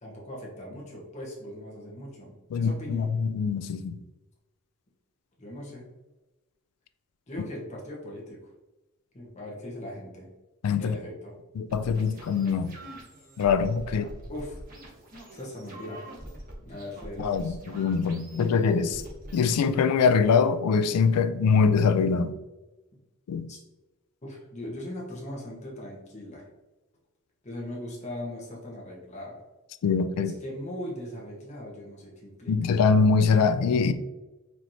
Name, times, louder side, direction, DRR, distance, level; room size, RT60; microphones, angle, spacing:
voice 1, 0.0-3.1 5.4-5.8 7.3-8.4 9.1-10.3 10.8-11.3 13.9-14.6 15.3-16.0 16.6-17.6 23.5-23.6 24.2-26.5 27.4-29.4 30.1-32.6, left 1 dB, 30° left, 1.1 m, -39 dB
voice 2, 2.5-4.0 10.6-10.9 11.6-12.8 13.4-14.1 17.2-19.0 19.3-22.4 23.3-23.5 29.8-30.3 32.5-33.9, left 5 dB, 90° left, 0.3 m, -23 dB
sound 1, 11.7-20.0, right 1 dB, 40° right, 1.0 m, -45 dB
4.5 x 3.1 x 2.7 m
head